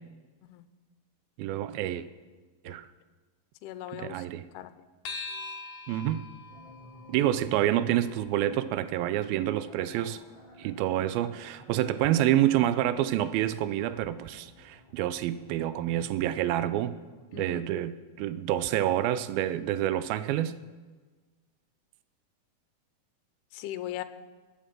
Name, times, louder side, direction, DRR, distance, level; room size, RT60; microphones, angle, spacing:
voice 1, 1.4-2.1 2.7-2.9 3.9-4.5 5.9-6.2 7.1-10.2 10.6-17.0 17.3-20.6, right 12 dB, 80° right, 13 dB, 2.2 m, -28 dB
voice 2, 3.6-4.2 4.5-4.7 17.3-17.7 23.5-24.0, left 13 dB, 85° left, 11 dB, 2.7 m, -39 dB
sound 1, 5.0-9.8, left 4 dB, 60° left, 2.4 m, -44 dB
sound 2, 6.5-17.4, left 1 dB, 45° left, 4.2 m, -53 dB
20.5 x 10.0 x 6.1 m, 1.3 s
omnidirectional pair, 4.5 m